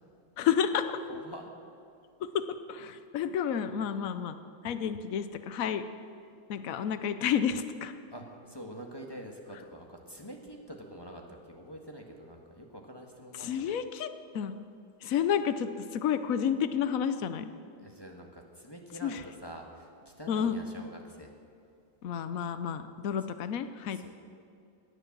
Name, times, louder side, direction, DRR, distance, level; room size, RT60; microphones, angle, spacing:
voice 1, 0.4-0.8 2.3-4.4 4.6-5.8 6.5-7.9 13.4-14.1 14.3-14.5 15.0-17.5 19.0-19.2 20.3-20.6 22.0-24.1, left 8 dB, 85° left, 11 dB, 0.7 m, -30 dB
voice 2, 1.1-1.5 8.1-13.7 17.8-21.3 23.8-24.1, equal, 15° left, 0 dB, 1.4 m, -46 dB
18.0 x 10.5 x 7.4 m, 2.4 s
omnidirectional pair, 2.4 m